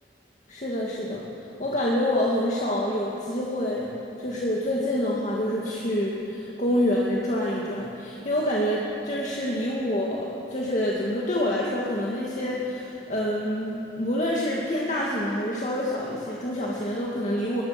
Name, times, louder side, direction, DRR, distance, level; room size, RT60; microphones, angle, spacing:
voice 1, 0.5-3.9 4.2-17.6, left 1 dB, 40° left, -4 dB, 2.2 m, -27 dB
22.0 x 20.5 x 6.0 m, 3.0 s
head